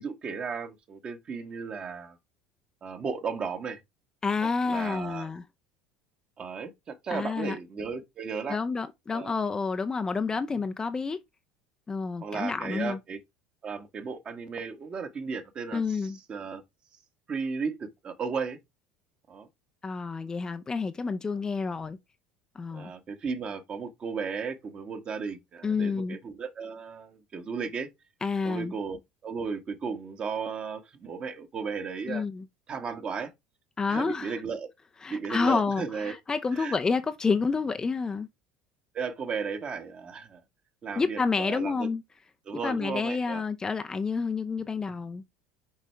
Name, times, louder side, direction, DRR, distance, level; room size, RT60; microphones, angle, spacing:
voice 1, 0.0-2.2 2.8-3.8 4.4-5.3 6.4-8.6 9.1-9.3 12.2-13.2 13.6-16.6 17.3-18.6 19.3-19.5 22.7-27.9 28.4-32.2 32.7-33.3 33.9-34.7 35.1-36.2 36.5-36.8 38.9-40.4 40.8-41.9 42.4-43.4, right 5 dB, 35° right, 1.5 m, -35 dB
voice 2, 4.2-5.4 7.1-7.6 8.5-11.2 11.9-13.0 15.7-16.2 19.8-22.0 22.6-22.9 25.6-26.2 28.2-28.7 32.1-32.4 33.8-34.3 35.0-38.3 41.0-42.0 42.6-45.2, left 4 dB, 20° left, 0.6 m, -29 dB
6.3 x 5.4 x 3.4 m
figure-of-eight pair, 65°, 3 cm